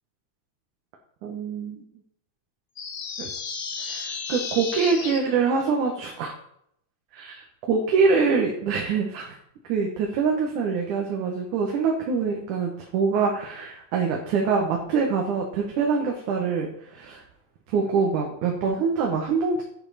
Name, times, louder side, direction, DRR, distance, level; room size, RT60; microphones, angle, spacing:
voice 1, 1.2-1.8 3.2-3.3 3.8-6.3 7.1-7.3 7.7-9.4 9.7-17.2 17.7-19.6, right 5 dB, 80° right, 1 dB, 2.9 m, -24 dB
sound 1, 2.8-5.2, left 5 dB, 55° left, 1.1 m, -33 dB
10.5 x 9.7 x 4.3 m, 0.71 s
omnidirectional pair, 3.5 m